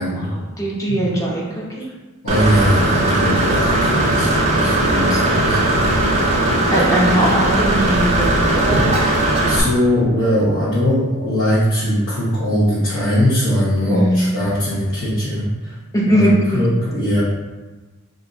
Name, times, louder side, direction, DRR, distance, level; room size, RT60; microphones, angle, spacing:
voice 1, 0.0-1.9 5.1-5.2 6.7-8.7 13.9-14.3 15.9-16.6, right 1 dB, 15° left, -4 dB, 0.5 m, -20 dB
voice 2, 2.2-5.8 9.5-15.4 16.1-16.3 16.5-17.2, equal, 70° left, -13 dB, 1.1 m, -20 dB
Engine / Mechanisms, 2.3-9.6, right 1 dB, 30° right, 0.5 m, -17 dB
2.8 x 2.5 x 3.8 m, 1.2 s
head